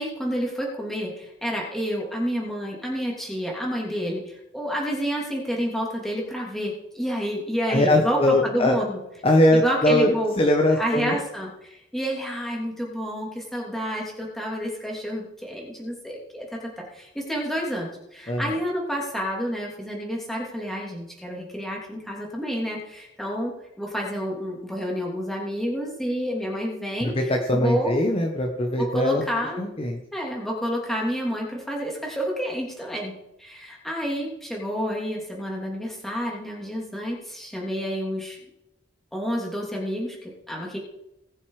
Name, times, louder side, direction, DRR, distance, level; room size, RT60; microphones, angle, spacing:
voice 1, 0.0-9.0 9.5-10.4 10.8-27.1 27.5-28.0 28.8-29.6 30.1-33.1 33.4-38.4 39.1-40.8, equal, ahead, -2 dB, 3.0 m, -29 dB
voice 2, 7.7-8.8 9.2-11.2 18.3-18.5 27.0-29.2 29.6-30.0, left 1 dB, 30° left, 2 dB, 1.2 m, -21 dB
19.5 x 7.0 x 5.0 m, 0.87 s
head